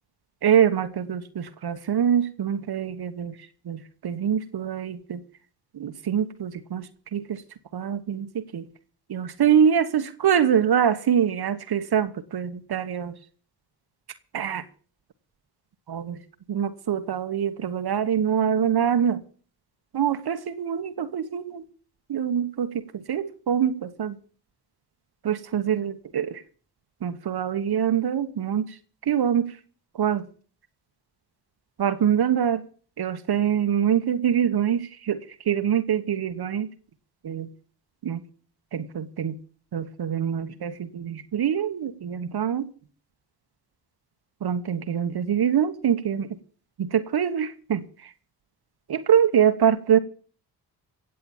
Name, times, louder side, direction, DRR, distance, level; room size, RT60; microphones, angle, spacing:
voice 1, 0.4-3.4 3.6-5.2 5.7-6.9 7.1-7.4 7.7-8.7 9.1-13.1 14.3-14.6 15.9-16.2 16.5-19.2 19.9-21.6 22.1-24.1 25.2-26.4 27.0-28.7 29.1-29.5 30.0-30.3 31.8-32.6 33.0-36.7 37.2-37.5 38.0-38.2 38.7-39.4 39.7-42.7 44.4-46.3 46.8-48.1 48.9-50.0, right 8 dB, 65° right, 9 dB, 1.2 m, -24 dB
17.5 x 7.7 x 7.2 m, 0.43 s
cardioid pair, 55°, 42 cm